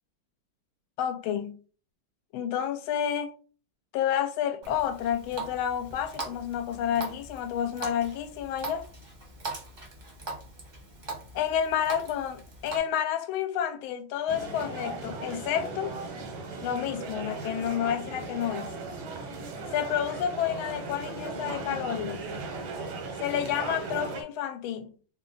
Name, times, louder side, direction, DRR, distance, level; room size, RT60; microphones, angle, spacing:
voice 1, 1.0-1.6 2.3-3.3 3.9-8.8 11.3-15.9 16.6-18.7 19.7-22.3 23.2-24.9, left 9 dB, 85° left, 1.4 m, -30 dB
Water tap faucet, 4.6-12.8, right 3 dB, 40° right, 0.6 m, -41 dB
sound 1, 14.3-24.2, right 3 dB, 85° right, 1.6 m, -37 dB
3.5 x 2.2 x 3.8 m
omnidirectional pair, 2.2 m